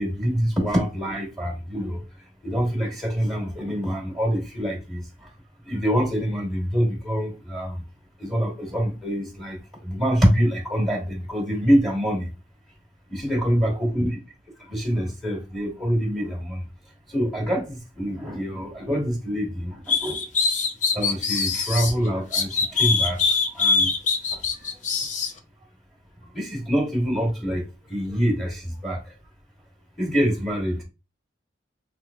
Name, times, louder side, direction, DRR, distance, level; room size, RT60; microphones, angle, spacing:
voice 1, 0.0-2.0 2.4-5.3 5.6-7.8 8.2-12.3 13.1-14.1 14.7-16.6 17.1-20.2 20.9-23.2 23.5-23.9 24.3-24.7 26.3-29.1 30.0-30.8, equal, ahead, 1.2 m, -25 dB
sound 1, 19.9-21.9 22.3-25.3, left 4 dB, 40° left, 0.5 m, -23 dB
3.4 x 3.3 x 2.3 m
head